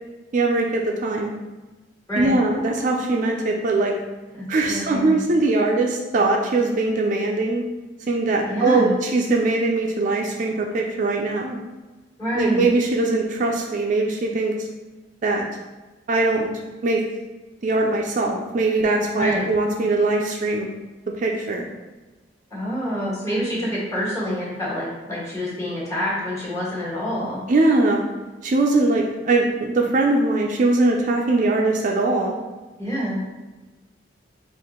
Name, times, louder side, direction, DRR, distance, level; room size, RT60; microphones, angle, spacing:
voice 1, 0.3-1.3 2.2-3.9 4.5-7.6 8.1-11.6 12.3-14.7 15.2-15.5 16.1-16.5 16.8-17.0 17.6-20.7 21.2-21.7 27.5-28.0 28.4-32.3, right 2 dB, 45° right, 1 dB, 0.4 m, -21 dB
voice 2, 4.3-5.2 8.5-8.9 12.2-12.7 19.1-19.5 22.5-27.4 32.8-33.2, equal, 15° left, -6 dB, 1.5 m, -26 dB
4.5 x 2.4 x 3.6 m, 1.2 s
head